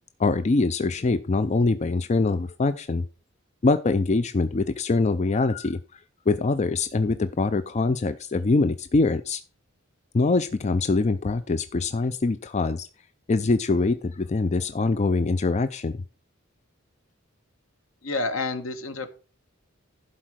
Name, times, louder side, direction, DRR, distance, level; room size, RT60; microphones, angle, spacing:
voice 1, 0.2-3.0 3.6-5.8 6.3-9.4 10.1-12.9 13.3-15.9, left 3 dB, 35° left, 11 dB, 0.4 m, -23 dB
voice 2, 18.0-19.1, left 3 dB, 75° left, 9 dB, 1.3 m, -29 dB
11.5 x 4.3 x 6.2 m, 0.36 s
head